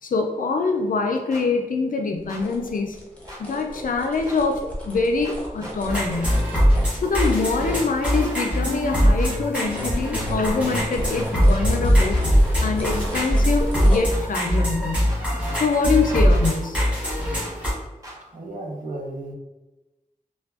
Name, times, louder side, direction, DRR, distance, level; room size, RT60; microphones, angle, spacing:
voice 1, 0.0-3.0 3.4-6.4 7.0-12.2 12.6-15.1 15.5-16.8, left 4 dB, 70° left, 3 dB, 0.4 m, -24 dB
sound 1, 1.3-1.4 2.3-2.4 3.3-3.4 4.3-4.4 5.2-5.8 6.2-6.4 7.2-7.3 8.2-8.3 9.2-9.3 10.2-10.3 11.1-11.3 12.1-12.3 13.1-13.3 14.1-14.2 15.1-15.6 16.1-16.6 17.0-17.6 18.0-18.2, equal, 25° right, 0.9 m, -40 dB
sound 2, 2.2-8.4 8.9-16.4 16.8-16.9, equal, 10° left, 0.8 m, -34 dB
sound 3, 5.9-17.7, equal, 10° right, 1.4 m, -21 dB
voice 2, 18.3-19.3, right 2 dB, 60° right, -2 dB, 0.7 m, -33 dB
3.3 x 2.2 x 2.3 m, 1.0 s
wide cardioid pair, 55°, 15 cm